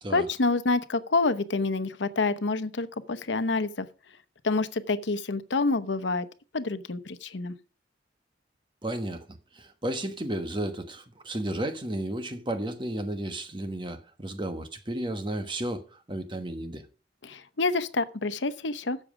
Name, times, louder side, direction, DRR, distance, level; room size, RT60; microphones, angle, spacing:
voice 1, 0.1-3.9 4.4-6.3 6.5-7.5 17.2-19.0, left 3 dB, 90° left, 0.9 m, -27 dB
voice 2, 8.8-16.8, right 1 dB, 25° right, 1.2 m, -33 dB
12.5 x 7.5 x 5.0 m
head